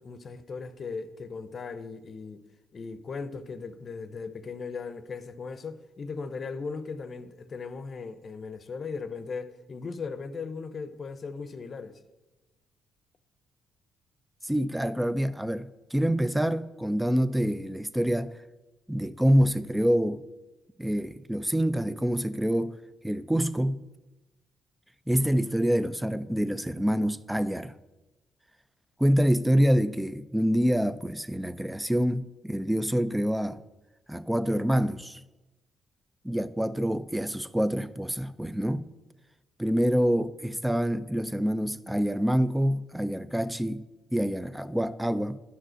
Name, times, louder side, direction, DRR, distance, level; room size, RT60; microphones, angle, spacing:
voice 1, 0.0-2.4 2.7-12.0, left 4 dB, 45° left, 0.7 m, -38 dB
voice 2, 14.4-18.3 18.9-20.2 20.8-22.8 23.0-23.8 25.1-27.7 29.0-33.6 34.1-35.2 36.2-38.9 39.6-43.8 44.1-45.4, equal, 5° right, 0.4 m, -26 dB
11.5 x 5.1 x 6.3 m
cardioid pair, 90°, 0 cm